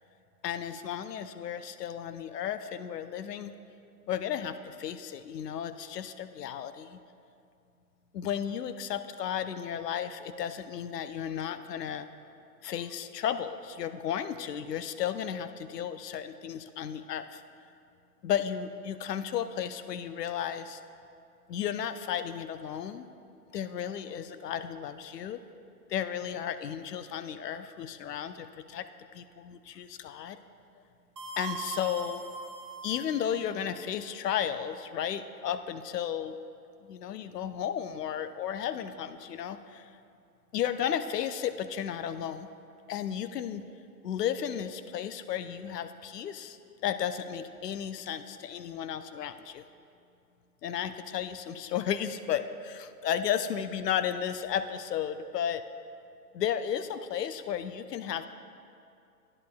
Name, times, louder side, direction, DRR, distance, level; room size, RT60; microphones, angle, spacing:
voice 1, 0.4-3.5 4.1-7.0 8.1-12.1 12.6-17.4 18.2-20.8 21.5-23.0 23.5-25.4 25.9-28.9 29.1-30.4 31.4-32.3 32.8-36.4 36.8-39.9 40.5-42.5 42.9-43.6 44.0-49.6 50.6-55.6 56.3-58.3, left 9 dB, 80° left, 11 dB, 0.6 m, -34 dB
sound 1, 31.2-33.5, right 4 dB, 75° right, 1.3 m, -40 dB
11.0 x 10.5 x 2.3 m, 2.5 s
hypercardioid pair, 140°, 47 cm